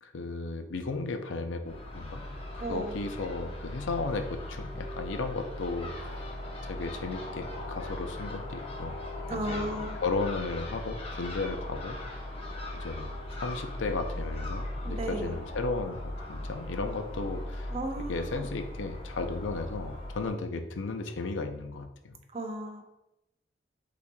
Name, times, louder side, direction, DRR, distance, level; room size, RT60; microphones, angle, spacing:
voice 1, 0.0-2.3 2.5-6.3 6.7-9.0 9.3-12.3 12.8-13.1 13.4-22.2, left 3 dB, 90° left, 7 dB, 0.5 m, -35 dB
Crow / Gull seagull, 1.6-20.3, left 1 dB, 30° left, 0.8 m, -38 dB
voice 2, 2.6-2.9 9.3-10.0 14.8-15.4 17.7-18.5 22.3-22.8, right 1 dB, 35° right, 3 dB, 0.6 m, -35 dB
5.7 x 4.0 x 2.3 m, 0.90 s
head